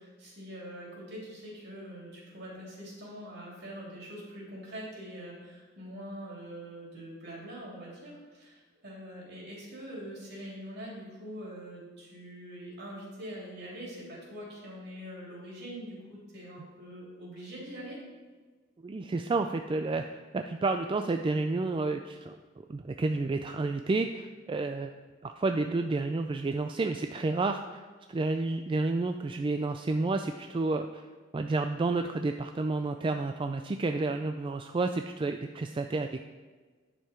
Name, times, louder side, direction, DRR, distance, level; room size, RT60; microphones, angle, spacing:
voice 1, 0.0-18.0, equal, 60° right, -4 dB, 3.3 m, -44 dB
voice 2, 18.8-24.9 25.2-27.8 28.1-31.0 31.3-36.2, right 3 dB, 25° right, 6 dB, 0.3 m, -30 dB
10.0 x 6.7 x 4.5 m, 1.4 s
head